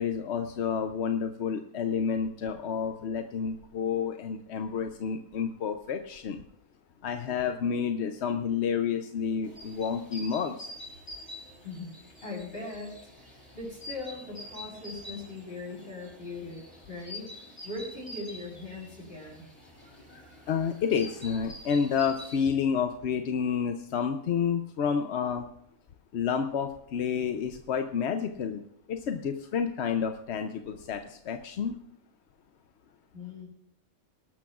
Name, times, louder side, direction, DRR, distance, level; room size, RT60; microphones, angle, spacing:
voice 1, 0.0-6.4 7.0-10.7 20.5-25.5 26.1-28.6 28.9-31.8, left 7 dB, 60° left, 6 dB, 0.8 m, -30 dB
sound 1, 9.4-22.5, left 1 dB, 25° left, 3.7 m, -47 dB
voice 2, 12.2-17.3 17.6-19.4 33.1-33.5, left 2 dB, 40° left, -3 dB, 7.2 m, -40 dB
23.5 x 12.0 x 2.4 m, 0.73 s
omnidirectional pair, 1.5 m